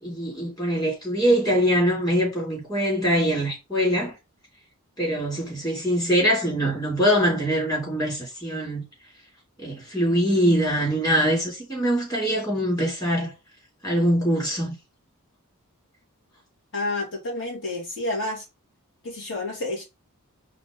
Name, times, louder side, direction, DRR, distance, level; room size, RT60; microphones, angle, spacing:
voice 1, 0.0-4.1 5.0-8.8 9.6-13.3 13.8-14.8, equal, 20° left, 3.6 m, -23 dB
voice 2, 16.7-18.4 19.0-19.8, left 2 dB, 60° left, 2.8 m, -29 dB
5.0 x 3.5 x 5.3 m
head